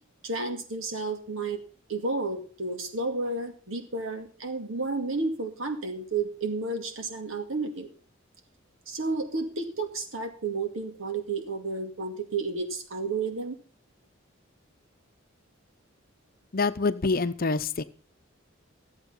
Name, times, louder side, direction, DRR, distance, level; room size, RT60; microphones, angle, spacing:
voice 1, 0.2-1.6 1.9-7.9 8.9-13.6, right 3 dB, 85° right, 6 dB, 2.2 m, -31 dB
voice 2, 16.5-17.8, left 3 dB, 45° left, 12 dB, 0.7 m, -26 dB
14.0 x 8.0 x 5.6 m, 0.41 s
head